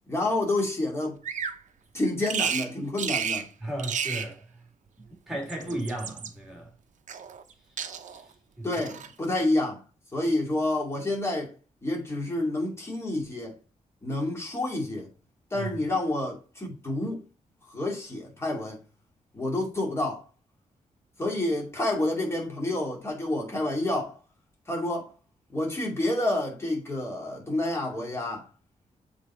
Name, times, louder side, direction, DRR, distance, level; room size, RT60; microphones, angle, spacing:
voice 1, 0.1-1.2 1.9-3.5 5.6-5.8 8.6-9.8 10.1-11.5 11.8-13.6 14.0-15.1 15.5-17.3 17.7-18.8 19.3-20.2 21.2-24.2 24.7-25.1 25.5-28.5, left 1 dB, 20° left, 2.6 m, -29 dB
Bird vocalization bird call bird song, 1.2-1.6 2.3-2.7 3.0-3.5 3.8-4.3 5.3-6.3 7.1-7.5 7.8-8.2 8.7-9.1, right 7 dB, 70° right, 0.8 m, -32 dB
voice 2, 3.6-4.6 5.0-6.7 8.0-8.3 8.6-8.7 15.5-16.0, right 1 dB, ahead, 2.7 m, -35 dB
7.4 x 4.0 x 4.5 m
wide cardioid pair, 165°, 13 cm